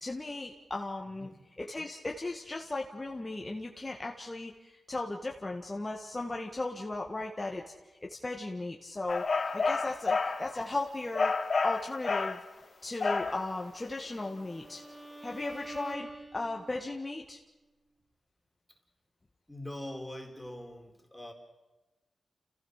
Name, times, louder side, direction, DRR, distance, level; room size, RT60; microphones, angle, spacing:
voice 1, 0.0-1.3 1.6-11.3 11.6-12.4 12.8-14.8 15.2-17.4, left 2 dB, 30° left, 0 dB, 1.8 m, -36 dB
sound 1, 9.1-10.4 11.2-12.4 13.0-13.4, left 4 dB, 60° left, 1.7 m, -29 dB
Bowed string instrument, 13.9-17.0, right 2 dB, 25° right, 4.2 m, -46 dB
voice 2, 19.5-21.3, left 1 dB, 10° left, 2 dB, 4.1 m, -42 dB
29.5 x 15.5 x 6.7 m, 1.1 s
cardioid pair, 55°, 0 cm